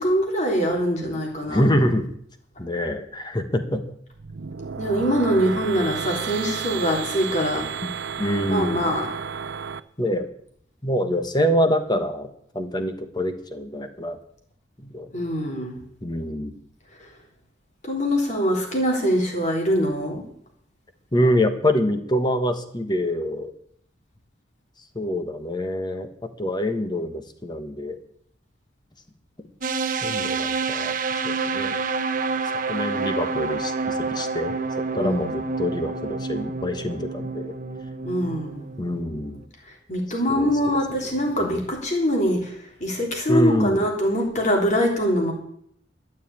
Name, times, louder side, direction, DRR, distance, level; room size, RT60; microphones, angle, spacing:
voice 1, 0.0-1.7 4.8-7.7 8.5-9.1 15.1-15.8 17.0-17.1 17.8-20.2 34.9-35.3 38.0-38.7 39.7-45.3, equal, 40° left, 1 dB, 3.5 m, -23 dB
voice 2, 1.5-2.1 2.6-3.8 7.8-7.9 8.2-8.8 10.0-10.3 10.8-12.3 12.5-14.2 14.8-15.1 16.0-16.5 21.1-23.5 24.9-26.1 26.4-28.0 30.0-30.9 31.2-31.7 32.7-34.5 34.9-37.5 38.8-39.4 40.3-40.5 41.4-41.6 43.3-43.8, equal, 25° left, 8 dB, 1.3 m, -25 dB
sound 1, 4.1-9.8, right 6 dB, 70° right, 0.6 m, -32 dB
sound 2, 29.6-39.4, right 4 dB, 45° right, 0.9 m, -28 dB
12.5 x 7.4 x 8.7 m, 0.67 s
head